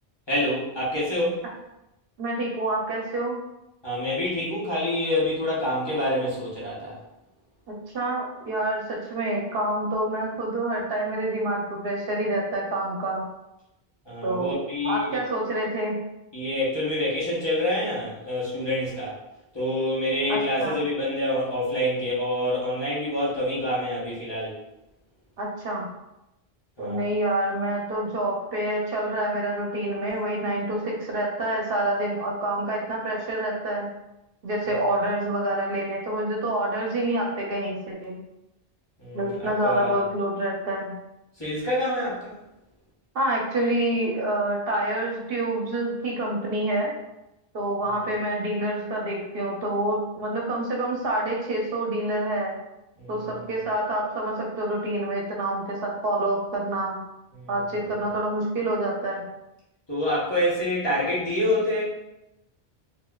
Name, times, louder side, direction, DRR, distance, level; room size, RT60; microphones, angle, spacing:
voice 1, 0.3-1.4 3.8-7.0 14.1-15.1 16.3-19.2 19.5-24.6 26.8-27.1 39.0-39.3 39.6-40.0 41.4-42.3 53.0-53.4 57.3-57.6 59.9-61.8, left 1 dB, 25° left, -8 dB, 0.9 m, -27 dB
voice 2, 2.2-3.4 7.7-13.2 14.2-16.0 20.3-20.8 25.4-25.9 26.8-33.9 34.4-38.2 39.1-40.9 43.1-46.9 47.5-52.5 53.1-57.0 57.5-59.2, right 1 dB, 70° right, -1 dB, 0.8 m, -27 dB
4.1 x 2.4 x 2.3 m, 0.91 s
omnidirectional pair, 1.1 m